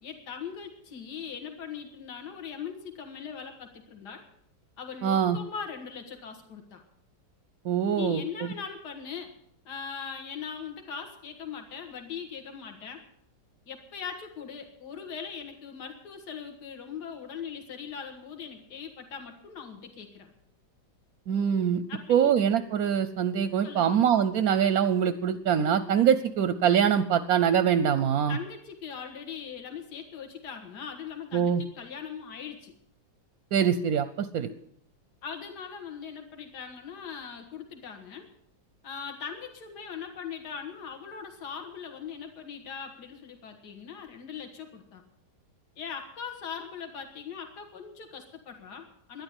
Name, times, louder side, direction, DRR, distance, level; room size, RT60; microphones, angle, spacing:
voice 1, 0.0-4.2 4.8-6.8 7.9-9.3 9.7-13.0 13.7-20.3 21.9-22.3 23.6-24.0 28.3-32.7 35.2-38.3 38.8-45.0 45.8-49.2, left 7 dB, 60° left, 5 dB, 2.3 m, -40 dB
voice 2, 5.0-5.4 7.6-8.2 21.3-21.8 22.1-28.4 31.3-31.6 33.5-34.5, right 8 dB, 65° right, 12 dB, 1.0 m, -24 dB
12.0 x 10.5 x 8.2 m, 0.71 s
omnidirectional pair, 2.0 m